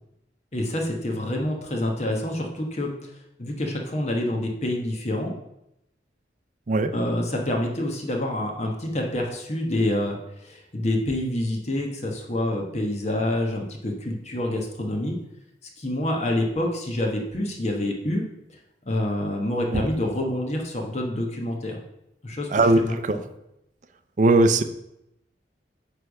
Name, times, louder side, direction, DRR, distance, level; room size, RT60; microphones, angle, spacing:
voice 1, 0.5-2.9 3.4-5.3 6.9-15.2 15.8-18.3 18.8-21.8 22.2-23.2, left 1 dB, 40° left, 1 dB, 1.1 m, -27 dB
voice 2, 22.5-23.2 24.2-24.6, right 2 dB, 45° right, 10 dB, 0.5 m, -19 dB
9.4 x 3.4 x 6.3 m, 0.84 s
head